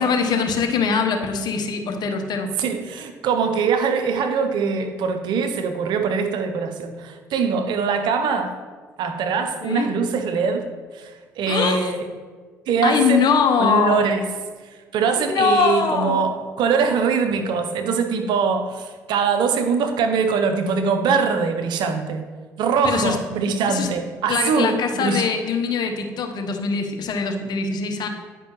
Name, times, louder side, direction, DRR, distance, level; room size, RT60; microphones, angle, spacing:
voice 1, 0.0-2.5 9.6-9.9 11.5-11.9 12.8-14.0 15.2-16.2 22.8-23.2 23.7-23.9 24.3-28.1, left 5 dB, 60° left, 4 dB, 1.0 m, -22 dB
voice 2, 2.6-8.6 9.0-10.7 10.9-12.1 12.7-13.3 13.6-14.3 14.6-22.2 22.6-25.3, right 5 dB, 65° right, 6 dB, 0.7 m, -22 dB
9.9 x 5.2 x 3.1 m, 1.5 s
hypercardioid pair, 55°, 8 cm